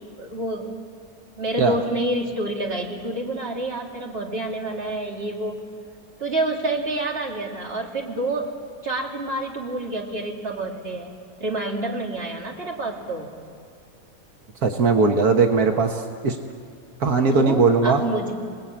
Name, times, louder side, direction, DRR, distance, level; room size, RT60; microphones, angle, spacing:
voice 1, 0.2-0.7 1.4-5.6 6.2-8.5 8.8-13.3 17.3-18.3, right 2 dB, 40° right, 0 dB, 2.9 m, -28 dB
voice 2, 14.6-16.4 17.0-18.0, right 4 dB, 85° right, 4 dB, 1.8 m, -19 dB
29.0 x 19.5 x 8.8 m, 2.3 s
omnidirectional pair, 1.6 m